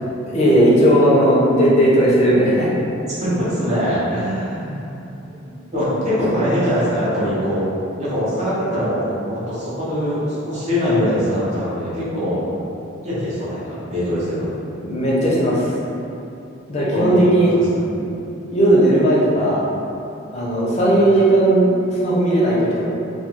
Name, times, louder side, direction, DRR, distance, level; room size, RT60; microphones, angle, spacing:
voice 1, 0.3-2.7 5.9-6.0 6.3-6.4 14.8-15.7 16.7-17.5 18.5-19.7 20.3-22.8, right 1 dB, 30° left, -6 dB, 0.5 m, -16 dB
voice 2, 3.2-5.0 5.2-7.6 8.0-12.4 13.0-14.5 16.9-17.2 17.7-17.8, equal, 35° right, -9 dB, 0.7 m, -22 dB
2.3 x 2.3 x 2.9 m, 2.8 s
head